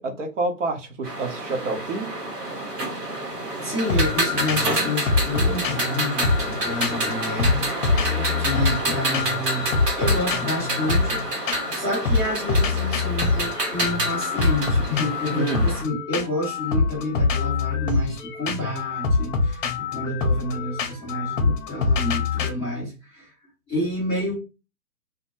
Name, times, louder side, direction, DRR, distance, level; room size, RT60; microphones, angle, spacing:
voice 1, 0.0-2.1 8.1-8.5 15.3-15.7, right 3 dB, 50° right, 0.7 m, -28 dB
sound 1, 1.0-15.8, right 1 dB, 85° right, 0.9 m, -28 dB
voice 2, 3.2-23.3 23.7-24.4, left 1 dB, 5° left, 0.5 m, -29 dB
sound 2, 3.9-4.2 4.5-4.8 5.1-7.1 7.4-8.9 9.1-9.5 9.7-11.8 12.0-22.5, left 4 dB, 55° left, 0.6 m, -24 dB
2.2 x 2.0 x 2.8 m
figure-of-eight pair, 130°, 47 cm